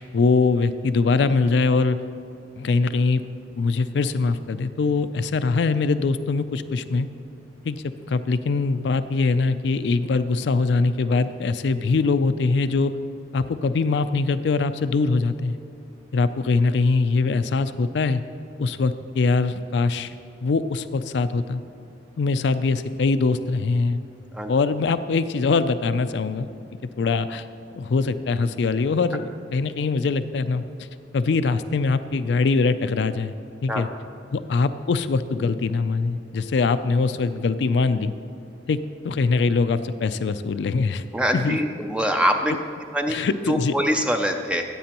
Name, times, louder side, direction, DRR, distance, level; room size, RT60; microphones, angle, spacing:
voice 1, 0.0-2.0 2.6-3.2 3.6-7.1 7.6-12.9 13.3-15.6 16.1-18.2 18.6-20.1 20.4-21.6 22.2-24.0 24.5-26.5 27.0-27.4 27.7-30.6 31.1-33.3 33.6-33.9 34.3-38.1 38.7-38.8 39.0-41.0 41.3-41.6 43.1-43.7, left 4 dB, 70° left, 12 dB, 0.4 m, -22 dB
voice 2, 41.1-42.6 42.9-43.1 43.5-44.6, equal, 5° right, 4 dB, 0.4 m, -23 dB
14.5 x 8.5 x 2.9 m, 2.7 s
head